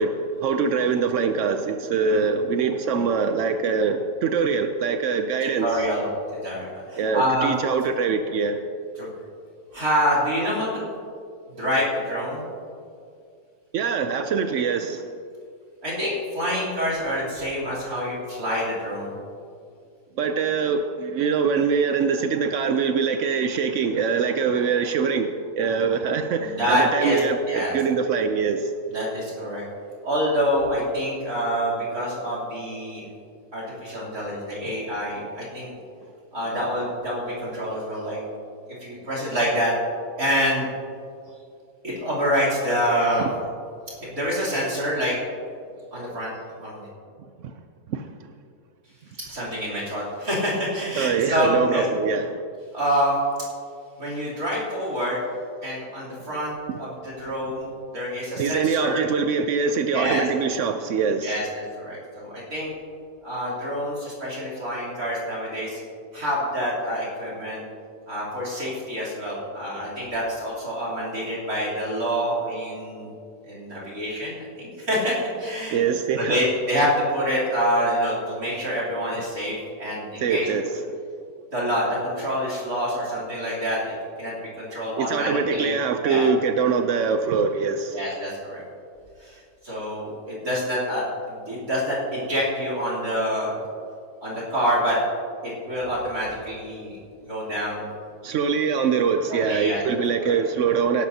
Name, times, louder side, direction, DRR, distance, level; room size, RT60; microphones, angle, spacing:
voice 1, 0.0-5.8 7.0-8.6 13.7-15.1 20.2-28.7 43.2-43.3 47.4-47.5 47.9-48.1 51.0-52.4 56.7-56.8 58.4-61.4 75.7-76.4 80.2-80.7 85.0-88.0 98.2-101.0, right 5 dB, 85° right, 7 dB, 0.6 m, -23 dB
voice 2, 5.4-6.0 6.4-7.5 9.0-9.1 9.7-10.7 11.5-12.4 15.8-19.1 26.4-27.2 27.5-27.8 28.9-29.6 30.0-33.0 33.5-35.7 36.3-38.2 38.8-39.7 40.2-40.7 41.8-43.3 44.0-45.2 45.9-46.3 46.6-46.9 49.3-51.8 52.7-53.2 54.0-55.2 55.6-59.0 59.9-60.3 61.2-62.7 63.2-65.8 66.1-67.6 68.1-73.1 73.5-75.8 76.2-80.5 81.5-86.3 87.9-88.6 89.2-93.5 94.2-95.0 95.4-97.9 99.3-99.8 100.2-100.4, equal, 50° right, -6 dB, 3.7 m, -27 dB
17.5 x 11.5 x 2.8 m, 2.3 s
omnidirectional pair, 1.9 m